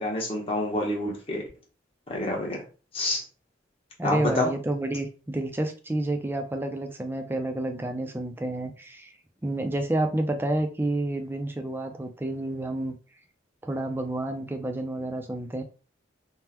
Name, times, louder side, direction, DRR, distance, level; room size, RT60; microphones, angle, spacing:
voice 1, 0.0-1.5 2.1-2.6 2.9-3.2 4.0-4.5, left 1 dB, 30° left, -1 dB, 0.9 m, -28 dB
voice 2, 4.0-9.1 9.4-12.9 13.6-15.6, right 1 dB, 10° right, 5 dB, 0.3 m, -29 dB
3.5 x 2.1 x 2.9 m, 0.36 s
head